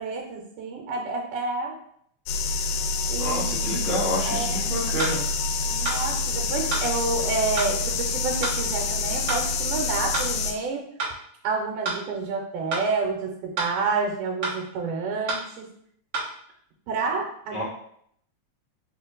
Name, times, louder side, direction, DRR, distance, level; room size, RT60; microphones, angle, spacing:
voice 1, 0.0-1.8 3.1-3.9 4.3-4.8 5.7-10.9 11.4-15.7 16.9-17.6, right 4 dB, 85° right, 1 dB, 2.3 m, -29 dB
sound 1, 2.3-10.5, left 4 dB, 80° left, 1.8 m, -27 dB
voice 2, 3.2-5.2 17.5-17.6, equal, 40° left, -8 dB, 0.5 m, -28 dB
sound 2, 5.0-5.2 5.9-6.0 6.7-6.9 7.6-7.7 8.4-8.6 9.3-9.4 10.1-10.3 11.0-11.2 11.8-12.0 12.7-12.9 13.6-13.7 14.4-14.6 15.3-15.5 16.1-16.3, right 3 dB, 55° right, 1.5 m, -28 dB
5.0 x 2.6 x 3.8 m, 0.67 s
omnidirectional pair, 3.6 m